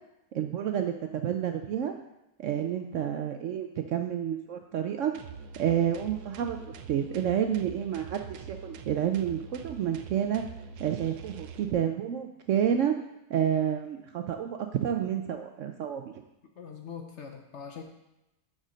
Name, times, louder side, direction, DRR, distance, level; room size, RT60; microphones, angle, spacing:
voice 1, 0.3-1.9 2.4-5.1 5.6-10.4 10.8-12.9 13.3-16.1, right 9 dB, 70° right, 6 dB, 0.7 m, -29 dB
sound 1, 5.1-11.7, right 5 dB, 85° right, 1.2 m, -44 dB
voice 2, 16.6-17.8, left 6 dB, 60° left, 4 dB, 0.9 m, -42 dB
6.5 x 5.1 x 6.2 m, 0.93 s
omnidirectional pair, 1.7 m